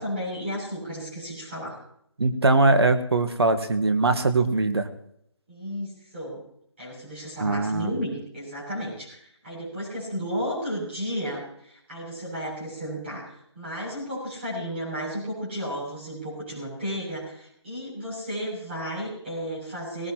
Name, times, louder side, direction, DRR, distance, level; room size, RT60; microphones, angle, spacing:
voice 1, 0.0-1.8 5.5-6.4 6.8-20.1, equal, 20° right, -4 dB, 7.0 m, -33 dB
voice 2, 2.2-4.9 7.4-7.9, right 2 dB, 55° right, 9 dB, 1.4 m, -21 dB
19.0 x 18.5 x 2.9 m, 0.71 s
figure-of-eight pair, 175°, 16 cm